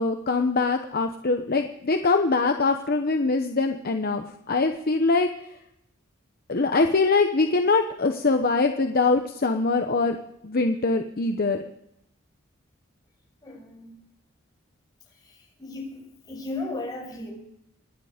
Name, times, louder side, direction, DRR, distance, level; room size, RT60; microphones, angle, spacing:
voice 1, 0.0-5.3 6.5-10.2 10.4-11.6, left 3 dB, 45° left, 6 dB, 0.9 m, -23 dB
voice 2, 13.4-13.9 15.6-17.3, left 2 dB, 20° left, -2 dB, 6.7 m, -35 dB
25.5 x 10.5 x 5.1 m, 0.79 s
head